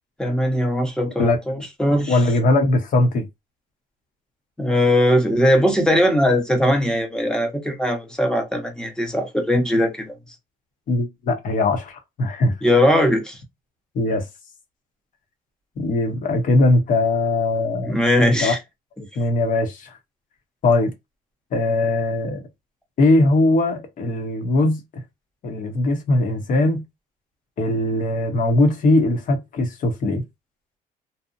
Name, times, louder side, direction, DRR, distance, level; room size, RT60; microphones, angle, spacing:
voice 1, 0.2-2.2 4.6-10.1 12.6-13.4 17.8-18.6, equal, 5° left, 0.8 m, -20 dB
voice 2, 2.1-3.3 10.9-12.5 13.9-14.3 15.8-18.5 19.2-19.9 20.6-20.9 21.5-22.4 23.0-24.8 25.4-26.8 27.6-30.2, left 2 dB, 50° left, 0.8 m, -20 dB
2.7 x 2.0 x 2.4 m
cardioid pair, 110°, 17 cm